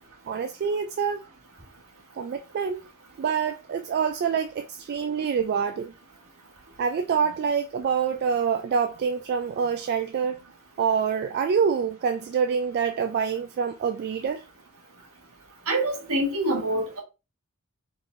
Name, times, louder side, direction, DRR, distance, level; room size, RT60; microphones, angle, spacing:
voice 1, 0.3-1.2 2.2-2.8 3.2-5.9 6.8-10.4 10.8-14.4, right 6 dB, 45° right, 0.3 m, -26 dB
voice 2, 15.7-17.0, right 1 dB, 70° right, 1.5 m, -25 dB
4.3 x 3.3 x 2.5 m
head